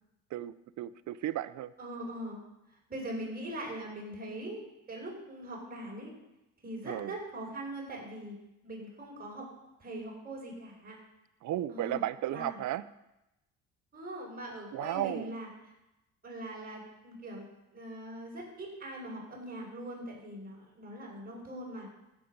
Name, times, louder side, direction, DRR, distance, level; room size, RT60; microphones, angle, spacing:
voice 1, 0.3-1.7 6.8-7.2 11.4-12.9 14.7-15.3, right 13 dB, 70° right, 16 dB, 0.6 m, -34 dB
voice 2, 1.8-2.4 2.9-4.6 4.9-6.1 6.6-8.3 8.6-9.5 9.8-11.0 11.7-12.0 12.3-12.6 13.9-15.5 16.2-17.4 17.7-21.9, right 1 dB, 30° right, -3 dB, 4.8 m, -41 dB
15.0 x 7.2 x 5.3 m, 0.94 s
cardioid pair, 90°, 30 cm